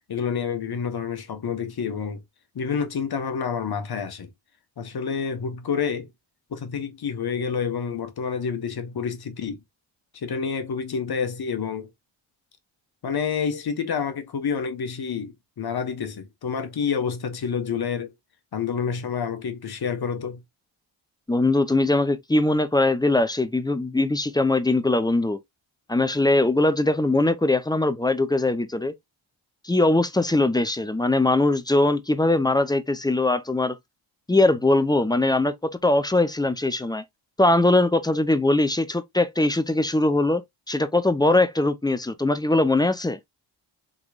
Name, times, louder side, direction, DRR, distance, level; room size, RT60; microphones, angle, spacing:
voice 1, 0.1-2.2 2.5-4.3 4.8-6.1 6.5-9.6 10.1-11.9 13.0-18.1 18.5-20.4, left 6 dB, 50° left, 1.1 m, -28 dB
voice 2, 21.3-25.4 25.9-28.9 29.6-33.8 34.3-37.0 37.4-40.4 40.7-43.2, left 2 dB, 10° left, 0.4 m, -21 dB
3.8 x 3.0 x 2.3 m
cardioid pair, 80°, 50 cm